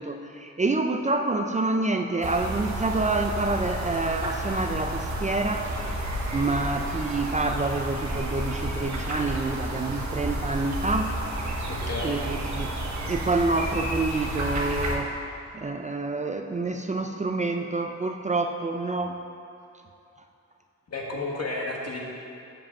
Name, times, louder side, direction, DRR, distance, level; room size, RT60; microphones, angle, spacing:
voice 1, 0.0-5.7 6.3-11.1 12.0-12.8 13.1-15.2 15.5-19.2, right 3 dB, 25° right, 5 dB, 0.4 m, -27 dB
sound 1, 2.2-15.0, right 1 dB, 70° right, 1.1 m, -31 dB
voice 2, 11.7-12.2 20.9-22.0, left 2 dB, 60° left, -1 dB, 1.4 m, -32 dB
7.5 x 5.0 x 6.9 m, 2.6 s
wide cardioid pair, 95°, 29 cm